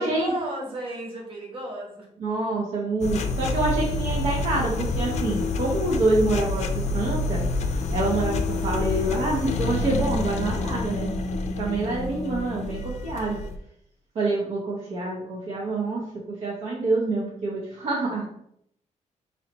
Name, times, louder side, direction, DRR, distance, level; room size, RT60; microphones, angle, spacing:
voice 1, 0.0-2.1 8.1-8.3 11.7-12.1, right 1 dB, 45° right, -1 dB, 1.2 m, -35 dB
voice 2, 2.2-7.4 7.7-11.1 11.6-13.4 14.1-18.3, right 2 dB, 60° right, -4 dB, 0.8 m, -26 dB
sound 1, 3.0-13.6, left 2 dB, 65° left, 0.4 m, -28 dB
4.0 x 3.2 x 2.9 m, 0.72 s
wide cardioid pair, 150°, 13 cm